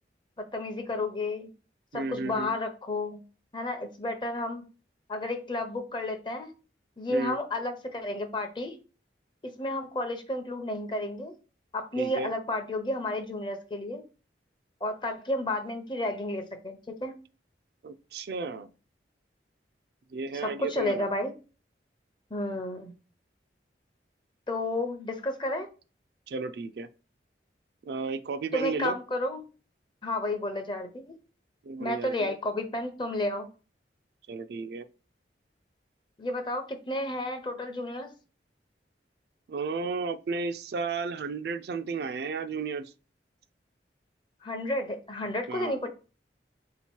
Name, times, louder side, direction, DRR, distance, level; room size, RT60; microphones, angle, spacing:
voice 1, 0.4-1.5 1.9-3.2 3.5-4.6 5.1-6.5 7.0-8.8 9.6-11.3 11.7-14.0 14.8-17.1 20.4-21.3 22.3-22.9 24.5-25.7 28.5-29.4 30.0-31.2 31.8-33.5 36.2-38.1 44.4-45.9, left 1 dB, 25° left, 0.7 m, -32 dB
voice 2, 1.9-2.5 7.1-7.4 12.0-12.3 17.8-18.7 20.1-21.1 26.3-26.9 27.9-29.0 31.6-32.4 34.3-34.9 39.5-42.9 45.5-45.8, right 4 dB, 60° right, 0.3 m, -33 dB
3.8 x 2.9 x 4.4 m
head